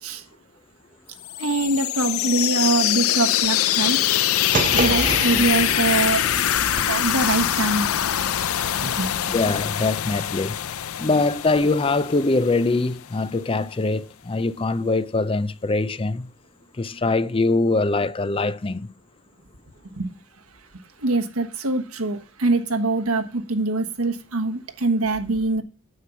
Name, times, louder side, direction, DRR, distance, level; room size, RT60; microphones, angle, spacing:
sound 1, 1.2-12.9, left 11 dB, 75° left, 0.5 m, -24 dB
voice 1, 1.4-4.0 4.7-6.2 6.9-7.9 8.8-9.3 19.9-20.1 21.0-25.6, right 2 dB, 80° right, 1.3 m, -23 dB
sound 2, 4.5-6.8, right 3 dB, 35° right, 0.7 m, -28 dB
voice 2, 9.3-10.6 11.0-16.3 16.8-18.9, left 3 dB, 25° left, 0.4 m, -23 dB
9.4 x 7.6 x 5.7 m
head